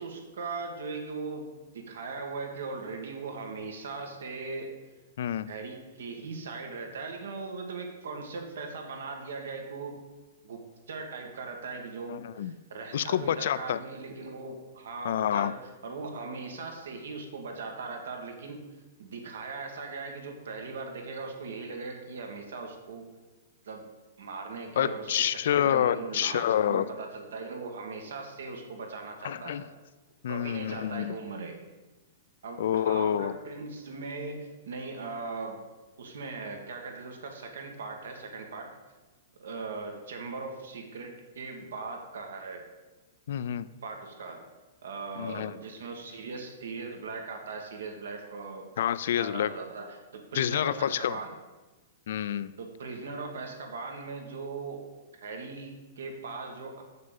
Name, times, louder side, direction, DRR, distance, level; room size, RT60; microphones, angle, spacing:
voice 1, 0.0-4.7 5.4-10.0 10.4-10.6 10.9-18.6 19.0-23.1 23.6-23.8 24.2-29.6 30.3-31.6 32.4-35.6 36.0-38.8 39.4-42.6 43.8-44.5 44.8-48.7 49.2-51.4 52.6-54.9 55.1-56.8, right 4 dB, 85° right, 3 dB, 2.0 m, -39 dB
voice 2, 5.2-5.5 12.1-12.5 12.9-13.8 15.0-15.5 24.8-26.9 29.2-29.6 30.2-31.2 32.6-33.3 43.3-43.7 45.2-45.5 48.8-49.5 50.3-51.2 52.1-52.5, left 10 dB, 65° left, 16 dB, 0.4 m, -28 dB
6.7 x 6.5 x 7.1 m, 1.2 s
hypercardioid pair, 165°, 0 cm